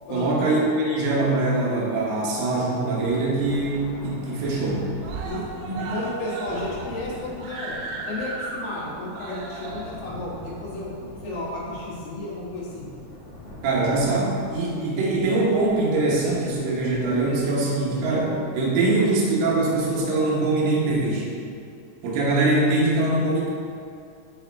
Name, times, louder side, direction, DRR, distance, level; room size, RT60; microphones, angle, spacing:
voice 1, 0.1-4.8 5.7-5.9 13.6-21.3 22.0-23.5, right 2 dB, 65° right, -5 dB, 2.6 m, -23 dB
Screaming, 2.7-3.0 3.4-3.5 3.8-3.9 4.2-4.7 5.0-11.8 12.7-12.8, right 3 dB, 85° right, 2.8 m, -36 dB
Thunder, 2.9-20.6, left 1 dB, 90° left, 1.1 m, -44 dB
voice 2, 5.8-7.8 8.1-10.9 11.2-12.9, left 2 dB, 65° left, -9 dB, 3.2 m, -33 dB
9.9 x 3.5 x 3.4 m, 2.5 s
omnidirectional pair, 4.8 m